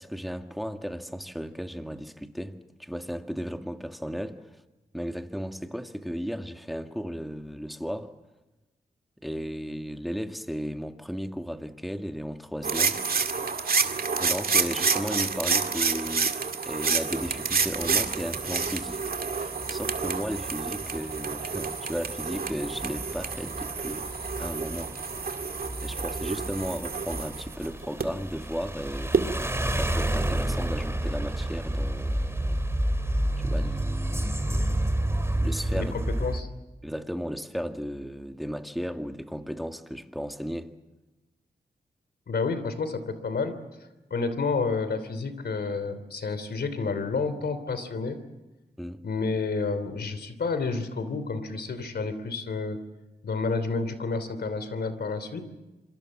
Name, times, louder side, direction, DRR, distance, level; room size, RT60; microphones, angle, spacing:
voice 1, 0.0-4.5 4.9-8.1 9.2-13.0 14.2-16.4 16.7-19.0 19.4-24.1 24.4-24.9 25.8-32.6 33.4-34.8 35.4-35.9 36.8-40.7 48.8-49.0, equal, ahead, 2.1 m, -35 dB
sound 1, 12.6-28.0 29.1-29.2, right 5 dB, 65° right, 2.1 m, -29 dB
sound 2, 17.2-36.4, right 1 dB, 15° right, 2.8 m, -31 dB
voice 2, 35.7-36.5 42.3-43.6 44.1-48.2 49.0-52.8 53.2-55.5, left 4 dB, 80° left, 3.0 m, -30 dB
27.0 x 23.5 x 7.5 m
cardioid pair, 55°, 17 cm